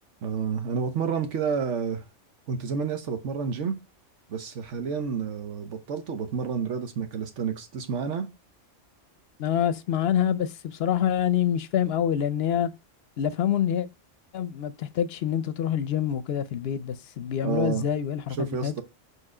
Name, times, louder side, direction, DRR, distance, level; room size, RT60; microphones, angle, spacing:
voice 1, 0.2-2.0 2.5-3.7 4.3-8.3 17.4-17.9 18.4-18.8, right 6 dB, 80° right, 1.2 m, -29 dB
voice 2, 9.4-12.7 13.2-13.9 14.3-18.8, left 9 dB, 65° left, 0.8 m, -26 dB
5.0 x 4.5 x 4.8 m
omnidirectional pair, 1.2 m